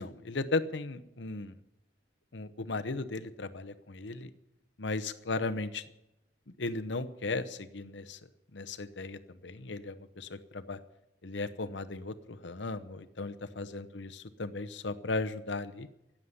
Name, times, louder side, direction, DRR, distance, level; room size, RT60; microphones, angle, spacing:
voice 1, 0.0-1.6 2.3-4.3 4.8-5.8 6.6-8.2 8.5-10.8 11.2-15.9, left 3 dB, 75° left, 10 dB, 0.9 m, -36 dB
15.0 x 7.4 x 9.8 m, 0.92 s
head